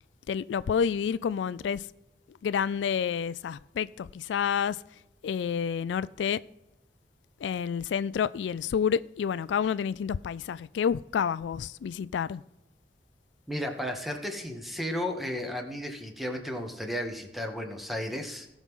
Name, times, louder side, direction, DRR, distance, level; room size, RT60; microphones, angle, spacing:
voice 1, 0.3-1.9 2.4-4.8 5.2-6.4 7.4-12.4, left 7 dB, 85° left, 0.3 m, -29 dB
voice 2, 13.5-18.5, left 1 dB, ahead, 1.2 m, -34 dB
18.0 x 6.1 x 3.7 m
head